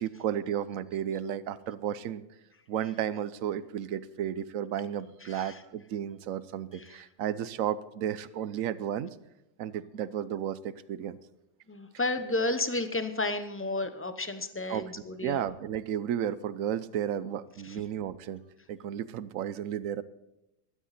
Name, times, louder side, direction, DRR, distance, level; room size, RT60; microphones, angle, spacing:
voice 1, 0.0-2.2 2.7-9.1 9.6-11.2 14.7-14.8 15.2-18.4 18.7-20.0, right 10 dB, 70° right, 16 dB, 1.0 m, -33 dB
voice 2, 5.2-5.6 6.7-7.0 11.7-15.4 17.6-17.8, left 2 dB, 10° left, 10 dB, 0.7 m, -32 dB
16.5 x 12.5 x 4.2 m, 0.90 s
omnidirectional pair, 1.5 m